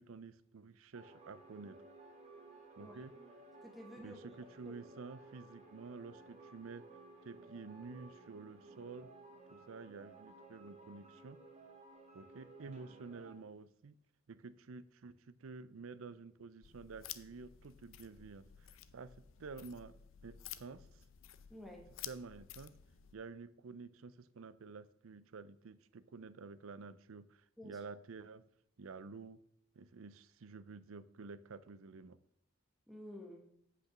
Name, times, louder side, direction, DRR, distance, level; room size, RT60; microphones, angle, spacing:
voice 1, 0.0-1.8 2.8-3.1 4.0-6.9 7.2-9.1 9.5-11.4 12.1-14.0 14.3-18.7 18.9-21.0 22.0-22.7 23.1-28.5 28.8-29.4 29.8-32.2, right 4 dB, 80° right, 16 dB, 0.5 m, -50 dB
sound 1, 0.9-13.3, right 3 dB, 35° right, 2.1 m, -57 dB
voice 2, 3.6-4.7 21.5-21.8 27.6-27.8 32.9-33.5, left 1 dB, ahead, 1 dB, 1.4 m, -52 dB
sound 2, 16.6-23.1, left 11 dB, 70° left, 0.6 m, -52 dB
8.0 x 5.9 x 6.1 m, 0.69 s
head